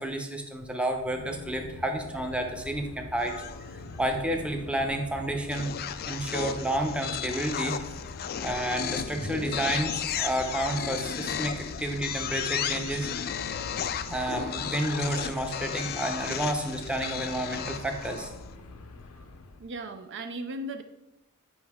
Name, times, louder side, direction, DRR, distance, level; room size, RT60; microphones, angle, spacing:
voice 1, 0.0-3.3 3.7-5.7 6.1-7.8 8.4-13.1 14.1-18.3, right 1 dB, 5° right, 3 dB, 0.7 m, -30 dB
sound 1, 1.0-19.7, left 3 dB, 75° left, 0.7 m, -44 dB
sound 2, 3.2-4.0 5.5-18.5, left 9 dB, 45° left, 0.3 m, -34 dB
Bird, 10.0-11.0 13.3-13.5 14.1-15.4 17.4-18.3, right 4 dB, 85° right, 0.9 m, -48 dB
voice 2, 19.6-20.8, right 1 dB, 55° right, 8 dB, 0.5 m, -37 dB
7.9 x 5.2 x 3.6 m, 0.92 s
head